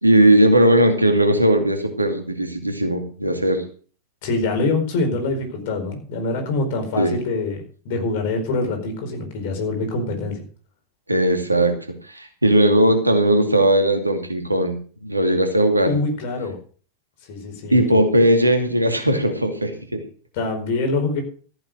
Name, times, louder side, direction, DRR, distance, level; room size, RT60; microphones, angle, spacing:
voice 1, 0.0-3.6 7.0-7.2 11.1-11.7 12.1-15.9 17.7-20.0, right 1 dB, 85° right, 5 dB, 2.4 m, -18 dB
voice 2, 4.2-10.4 15.9-16.6 17.3-18.0 20.3-21.2, left 3 dB, 50° left, 4 dB, 4.7 m, -25 dB
14.5 x 7.9 x 6.5 m, 0.41 s
figure-of-eight pair, 90°, 0 cm